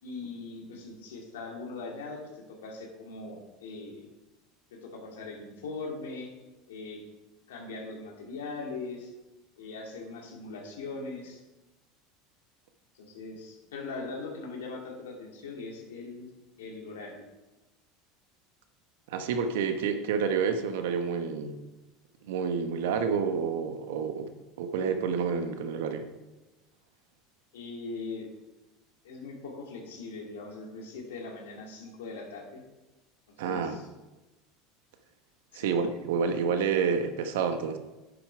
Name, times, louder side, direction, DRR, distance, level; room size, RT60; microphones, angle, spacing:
voice 1, 0.0-4.1 4.7-6.3 6.7-7.0 7.5-9.1 9.6-11.4 12.9-16.3 16.6-17.2 27.5-28.3 29.0-32.6 33.4-33.9 35.5-35.8, left 3 dB, 85° left, 0 dB, 2.5 m, -40 dB
voice 2, 19.1-21.6 22.2-24.3 24.6-26.1 33.4-33.8 35.5-37.8, right 6 dB, 80° right, 8 dB, 1.1 m, -29 dB
10.5 x 7.2 x 4.7 m, 1.1 s
hypercardioid pair, 95°, 0 cm